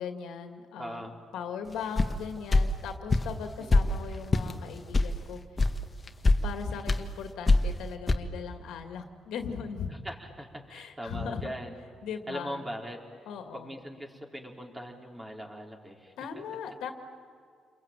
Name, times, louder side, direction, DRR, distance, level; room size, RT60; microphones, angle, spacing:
voice 1, 0.0-5.4 6.4-9.9 10.7-11.5 12.0-12.6 13.3-13.7 16.2-16.9, left 6 dB, 85° left, 5 dB, 2.3 m, -38 dB
voice 2, 0.8-1.1 3.6-3.8 9.9-11.8 12.3-13.0 13.5-16.1, equal, 15° right, 0 dB, 4.4 m, -40 dB
sound 1, 2.0-2.2 2.5-2.7 3.1-3.3 3.7-3.9 4.3-4.5 4.9-5.1 5.6-5.7 6.1-6.4 6.9-7.0 7.5-7.7 8.1-8.2, left 3 dB, 30° left, 1.5 m, -22 dB
29.5 x 22.5 x 9.2 m, 2.2 s
cardioid pair, 90°, 0 cm